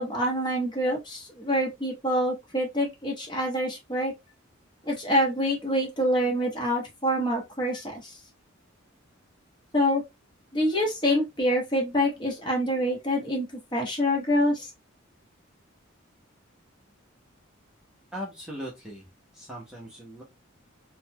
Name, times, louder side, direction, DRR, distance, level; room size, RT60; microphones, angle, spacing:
voice 1, 0.0-4.1 4.8-8.1 9.7-10.0 10.5-13.5 13.7-14.7, equal, 20° left, 1.0 m, -26 dB
voice 2, 18.1-19.1 19.3-20.2, equal, 5° right, 0.7 m, -39 dB
3.9 x 2.2 x 2.7 m
head